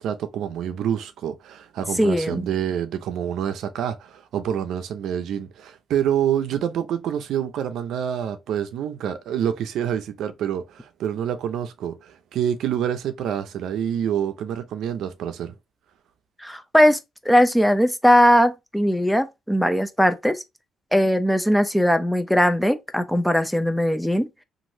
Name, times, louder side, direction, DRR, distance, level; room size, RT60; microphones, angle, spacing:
voice 1, 0.0-15.5, right 9 dB, 80° right, 0.5 m, -27 dB
voice 2, 2.0-2.5 16.4-17.0 17.3-20.4 20.9-24.3, equal, ahead, 0.5 m, -19 dB
3.0 x 2.5 x 2.6 m
cardioid pair, 90°, 0 cm